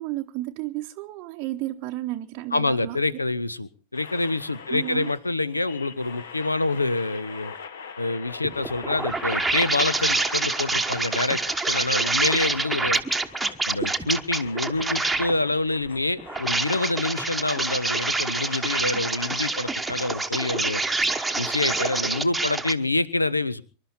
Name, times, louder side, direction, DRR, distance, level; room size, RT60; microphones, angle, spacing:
voice 1, 0.0-3.0 4.7-5.1, right 16 dB, 40° right, 0.8 m, -32 dB
voice 2, 2.5-7.5 8.0-11.4 11.7-13.0 13.7-20.8 21.4-23.6, left 2 dB, 80° left, 0.8 m, -26 dB
sound 1, 3.9-22.4, left 6 dB, 60° left, 1.3 m, -43 dB
sound 2, 8.4-15.4 16.2-22.7, right 3 dB, 5° right, 1.1 m, -26 dB
25.5 x 12.0 x 4.3 m
figure-of-eight pair, 90°, 0 cm